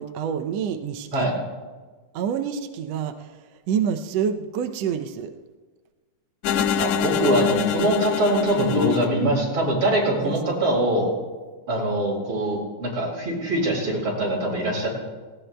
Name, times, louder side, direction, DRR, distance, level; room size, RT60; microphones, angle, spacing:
voice 1, 0.0-1.3 2.1-5.3 10.2-10.4, right 7 dB, 85° right, 5 dB, 1.4 m, -27 dB
sound 1, 6.4-9.8, left 8 dB, 80° left, 1.5 m, -25 dB
voice 2, 6.8-11.1 11.7-14.9, right 1 dB, 40° right, -3 dB, 5.3 m, -23 dB
19.0 x 18.0 x 2.2 m, 1.4 s
omnidirectional pair, 3.7 m